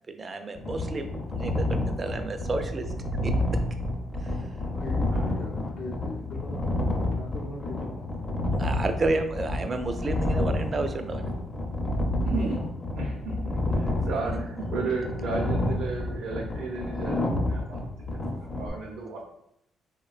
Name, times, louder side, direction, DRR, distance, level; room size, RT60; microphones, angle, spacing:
voice 1, 0.1-2.8 3.2-3.3 8.6-11.2, right 3 dB, 35° right, 7 dB, 0.3 m, -30 dB
sound 1, 0.6-18.7, left 1 dB, 25° left, 0.5 m, -29 dB
voice 2, 4.7-8.1, left 3 dB, 70° left, 1 dB, 0.6 m, -40 dB
voice 3, 12.2-12.6 13.0-18.1 18.6-19.3, right 4 dB, 90° right, -4 dB, 0.5 m, -34 dB
3.4 x 2.1 x 2.3 m, 0.78 s
cardioid pair, 90°, 0 cm